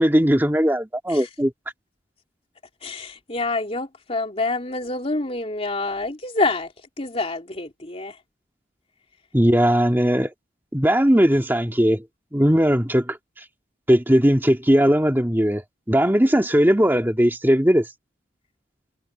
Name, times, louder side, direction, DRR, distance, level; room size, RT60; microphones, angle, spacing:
voice 1, 0.0-1.5 9.3-10.3 10.7-12.0 12.3-13.2 13.9-17.9, equal, 10° right, 1.9 m, -18 dB
voice 2, 2.8-6.7 7.0-8.1, left 2 dB, 35° left, 2.9 m, -27 dB
head